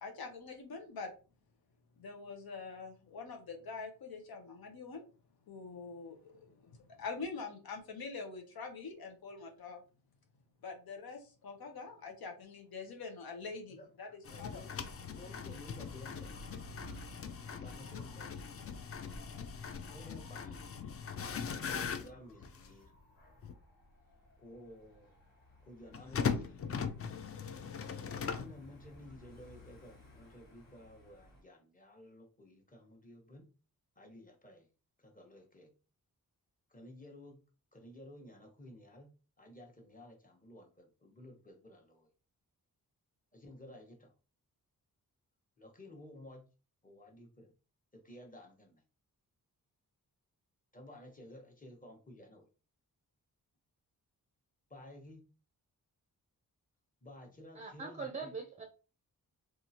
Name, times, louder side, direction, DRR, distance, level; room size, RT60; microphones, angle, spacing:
voice 1, 0.0-1.1 2.0-5.0 5.5-9.8 10.6-14.6, left 4 dB, 80° left, 3 dB, 0.8 m, -45 dB
voice 2, 13.7-16.3 17.5-18.5 19.9-20.7 21.9-22.9 24.4-25.2 25.6-26.6 28.2-33.5 34.0-34.7 35.0-35.7 36.7-37.4 37.7-39.1 39.4-42.1 43.3-44.1 45.6-46.4 46.8-47.5 47.9-48.8 50.7-52.5 54.7-55.2 57.0-58.3, left 1 dB, 20° left, 1 dB, 1.1 m, -54 dB
sound 1, 14.3-22.8 23.4-23.5 25.9-28.6, left 6 dB, 40° left, 0.4 m, -40 dB
Dog / Motorcycle, 14.6-31.4, equal, 60° left, 1.5 m, -57 dB
voice 3, 57.6-58.6, right 4 dB, 20° right, 4 dB, 0.5 m, -42 dB
2.8 x 2.4 x 2.8 m, 0.35 s
cardioid pair, 65°, 36 cm